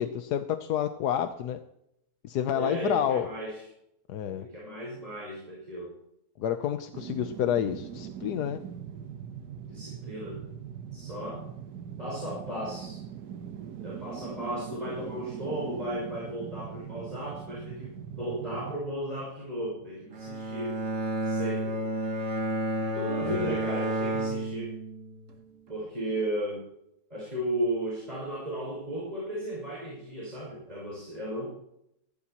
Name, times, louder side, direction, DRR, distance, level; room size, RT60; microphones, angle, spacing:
voice 1, 0.0-1.6 2.2-3.3 4.1-4.5 6.4-8.6 23.2-23.5, left 10 dB, 85° left, 8 dB, 1.3 m, -29 dB
voice 2, 2.5-3.6 4.3-6.0 9.7-10.4 10.9-11.4 12.0-13.0 13.8-20.8 21.2-21.8 22.9-24.8 25.7-26.6 27.1-31.5, right 1 dB, 25° right, -5 dB, 6.0 m, -35 dB
sound 1, 6.9-20.0 20.3-20.4, right 8 dB, 80° right, 1.5 m, -41 dB
Bowed string instrument, 20.1-25.3, right 1 dB, 55° right, 1.8 m, -31 dB
19.5 x 15.5 x 3.0 m, 0.78 s
omnidirectional pair, 1.7 m